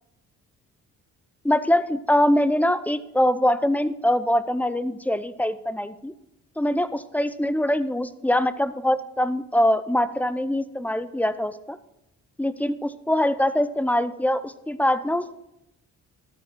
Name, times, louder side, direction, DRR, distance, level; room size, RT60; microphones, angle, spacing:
voice 1, 1.4-6.1 6.6-11.8 12.4-15.4, left 1 dB, 5° left, 14 dB, 0.7 m, -23 dB
13.0 x 9.3 x 4.6 m, 0.87 s
cardioid pair, 90°, 30 cm